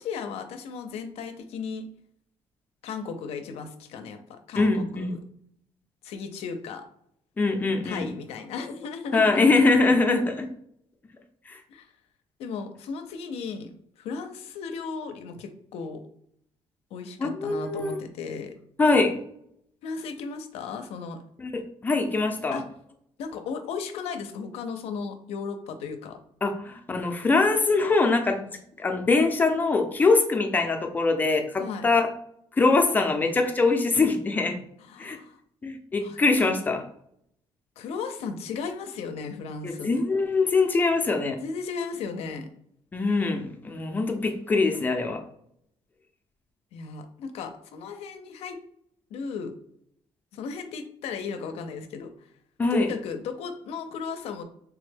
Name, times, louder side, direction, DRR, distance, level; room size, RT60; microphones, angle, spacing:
voice 1, 0.0-1.9 2.8-5.2 6.0-6.9 7.8-9.6 11.7-11.9 12.4-16.0 16.9-18.5 19.8-21.2 22.5-22.7 23.2-26.2 28.4-28.5 31.6-31.9 34.9-35.4 36.0-36.2 37.8-40.0 41.4-42.5 46.7-48.6 49.1-49.5 50.3-52.1 52.6-54.4, left 5 dB, 80° left, 8 dB, 0.4 m, -35 dB
voice 2, 4.6-5.1 7.4-8.1 9.1-10.5 11.5-11.6 17.2-18.0 18.8-19.1 21.4-22.6 26.4-28.4 28.8-32.1 32.5-34.6 35.0-35.2 35.6-36.8 39.6-41.4 42.9-45.2 52.6-52.9, left 3 dB, 15° left, 4 dB, 0.4 m, -23 dB
3.3 x 2.1 x 3.3 m, 0.69 s
cardioid pair, 150°, 10 cm